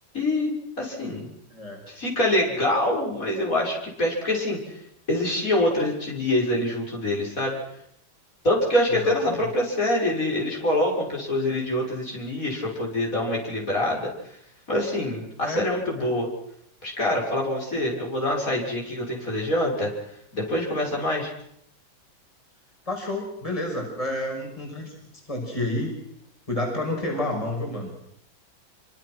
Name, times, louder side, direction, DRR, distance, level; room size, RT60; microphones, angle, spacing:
voice 1, 0.1-1.3 1.9-4.8 5.1-7.6 8.4-14.4 14.7-16.3 16.8-19.9 20.3-21.3, left 1 dB, 40° left, -2 dB, 7.0 m, -25 dB
voice 2, 1.5-1.8 8.9-9.5 15.4-15.7 16.0-16.1 22.9-24.9 25.3-26.0 26.5-27.9, left 1 dB, 15° left, 1 dB, 5.9 m, -30 dB
28.0 x 25.0 x 6.3 m, 0.73 s
omnidirectional pair, 2.1 m